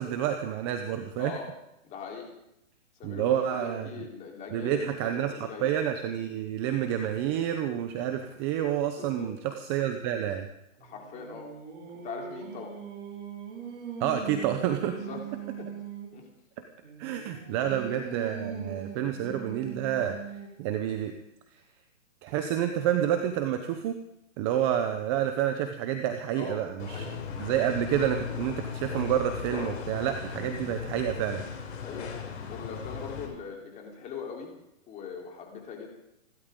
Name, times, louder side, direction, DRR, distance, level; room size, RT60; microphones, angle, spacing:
voice 1, 0.0-1.4 3.0-3.9 4.5-10.5 14.0-15.0 17.0-21.1 22.2-24.0 24.4-27.0 27.4-31.4, right 10 dB, 20° right, 7 dB, 0.8 m, -29 dB
voice 2, 1.8-2.3 3.0-5.7 9.0-9.3 10.8-11.5 11.9-12.7 14.8-15.2 15.6-15.7 16.1-16.3 17.6-17.7 26.3-27.2 31.8-32.1 32.5-34.5 34.9-35.9, left 6 dB, 20° left, -1 dB, 3.8 m, -41 dB
Singing, 10.8-16.2 16.8-20.7, right 6 dB, 40° right, 5.8 m, -41 dB
sound 1, 26.8-33.3, left 6 dB, 65° left, 7.4 m, -37 dB
29.5 x 12.5 x 3.8 m, 0.82 s
hypercardioid pair, 150°, 41 cm